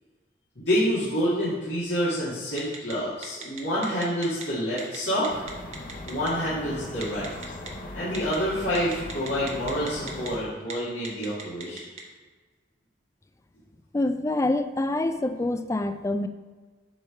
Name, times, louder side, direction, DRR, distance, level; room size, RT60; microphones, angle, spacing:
voice 1, 0.6-5.4 6.0-7.3 7.9-11.8, equal, 85° left, -10 dB, 2.0 m, -27 dB
Telephone, 2.6-2.9 3.2-4.4 4.8-5.0 5.2-6.3 7.0-7.7 8.1-8.4 8.7-10.3 10.6-10.7 11.0-12.0, right 5 dB, 40° right, 1.0 m, -37 dB
sound 1, 5.3-10.4, left 2 dB, 45° left, 0.6 m, -39 dB
voice 2, 13.9-16.3, left 2 dB, 15° left, 9 dB, 0.3 m, -26 dB
8.9 x 3.4 x 5.7 m, 1.4 s
head